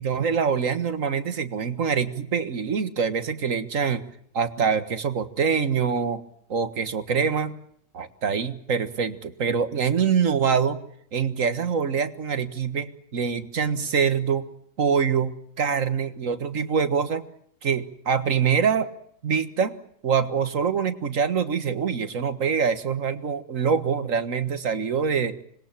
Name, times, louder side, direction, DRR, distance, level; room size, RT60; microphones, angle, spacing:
voice 1, 0.0-4.0 4.3-6.2 6.5-7.6 7.9-10.8 11.1-14.5 14.8-17.2 17.6-18.9 19.2-19.8 20.0-25.3, right 6 dB, 80° right, 10 dB, 1.9 m, -24 dB
26.5 x 21.0 x 7.4 m, 0.67 s
omnidirectional pair, 1.3 m